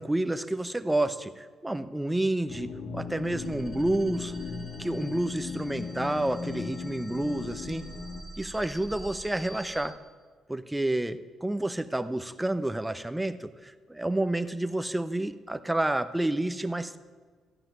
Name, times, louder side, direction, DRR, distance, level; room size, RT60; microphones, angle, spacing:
voice 1, 0.0-4.3 4.8-7.8 8.4-10.0 10.5-17.0, right 1 dB, 10° right, 10 dB, 0.7 m, -29 dB
sound 1, 2.5-8.2, left 5 dB, 65° left, 1.6 m, -38 dB
sound 2, 3.0-9.9, equal, 20° left, 2.6 m, -47 dB
13.5 x 5.8 x 9.2 m, 1.5 s
cardioid pair, 90°, 0 cm